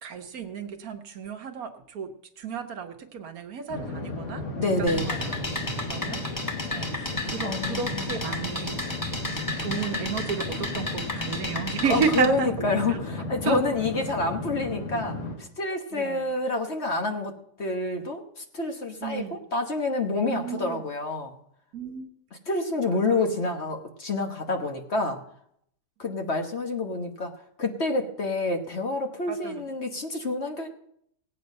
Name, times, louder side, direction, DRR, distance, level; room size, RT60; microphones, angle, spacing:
voice 1, 0.0-4.4 4.8-5.4 5.8-8.9 9.6-13.0 13.4-13.6 15.9-16.2 19.0-19.4 20.3-20.8 21.7-22.1 22.9-23.2 29.3-29.6, right 6 dB, 65° right, 7 dB, 1.4 m, -32 dB
sound 1, 3.7-15.4, left 2 dB, 90° left, 2.8 m, -34 dB
voice 2, 4.5-5.1 7.4-8.1 11.9-17.3 17.6-21.3 22.5-25.2 26.0-27.3 27.6-30.7, left 2 dB, 45° left, 4 dB, 1.4 m, -28 dB
sound 2, 4.9-12.2, left 2 dB, 15° left, 1.3 m, -33 dB
17.5 x 8.6 x 5.4 m, 0.71 s
omnidirectional pair, 1.7 m